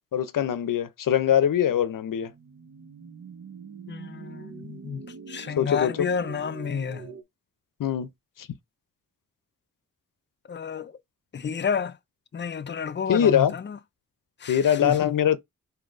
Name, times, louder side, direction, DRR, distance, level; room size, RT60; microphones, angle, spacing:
voice 1, 0.1-2.3 5.6-6.1 7.8-8.1 8.4-8.5 13.1-13.5 14.5-15.4, left 9 dB, 75° left, 0.6 m, -22 dB
sound 1, 1.8-7.2, right 6 dB, 55° right, 0.7 m, -44 dB
voice 2, 3.9-7.1 10.5-10.9 11.3-12.0 12.3-13.8 14.4-15.1, left 6 dB, 35° left, 0.4 m, -30 dB
3.9 x 2.7 x 4.8 m
wide cardioid pair, 155°, 33 cm